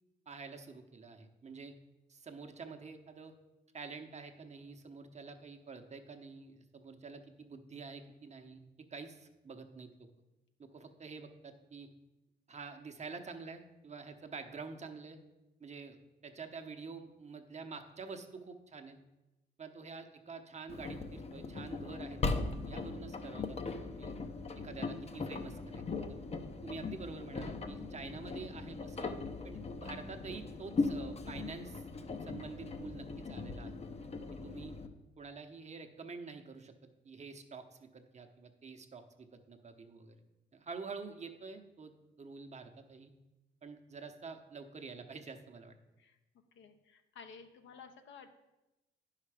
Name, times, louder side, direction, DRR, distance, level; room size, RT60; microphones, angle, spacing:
voice 1, 0.3-1.7 2.1-3.3 3.7-8.6 8.9-9.9 10.6-11.9 12.5-15.2 15.6-19.0 19.6-24.2 24.6-25.8 26.1-26.2 26.6-31.8 32.2-33.7 34.4-34.7 35.2-40.2 40.5-41.9 42.2-43.1 43.6-45.8, right 4 dB, 35° right, 6 dB, 1.0 m, -48 dB
Engine, 20.7-34.9, left 3 dB, 30° left, 0.8 m, -39 dB
voice 2, 46.6-48.3, left 5 dB, 70° left, 7 dB, 1.0 m, -53 dB
9.8 x 5.7 x 4.9 m, 1.0 s
cardioid pair, 90°, 20 cm